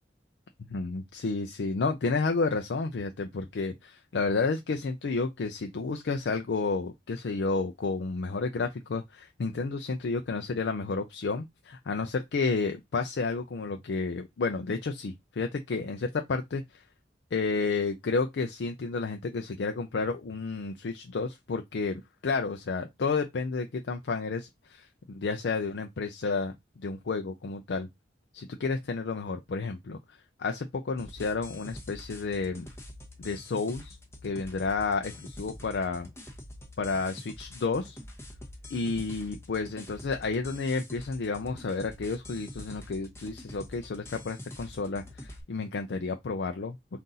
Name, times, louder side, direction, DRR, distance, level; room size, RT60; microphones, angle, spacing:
voice 1, 0.7-16.8 17.3-27.9 28.3-30.0 30.4-32.7 33.2-34.0 34.2-36.1 36.8-38.0 38.7-46.8, left 4 dB, 75° left, 0.5 m, -31 dB
sound 1, 31.0-45.4, left 1 dB, 15° left, 0.8 m, -46 dB
3.8 x 2.6 x 3.9 m
head